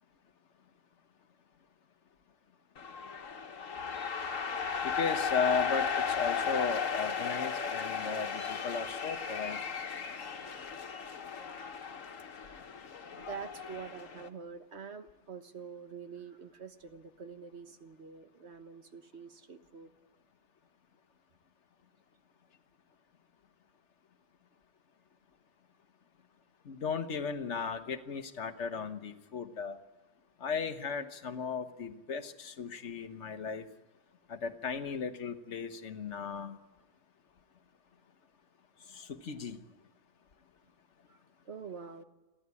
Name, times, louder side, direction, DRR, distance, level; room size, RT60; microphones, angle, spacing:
sound 1, 2.8-14.3, left 6 dB, 80° left, 1.7 m, -35 dB
voice 1, 4.8-9.6 26.6-29.8 30.4-33.6 34.3-36.6 38.9-39.6, left 5 dB, 65° left, 9 dB, 1.4 m, -36 dB
voice 2, 13.1-19.9 41.1-41.2 41.4-42.0, right 6 dB, 60° right, 9 dB, 1.5 m, -46 dB
28.5 x 11.5 x 9.7 m, 1.2 s
omnidirectional pair, 1.3 m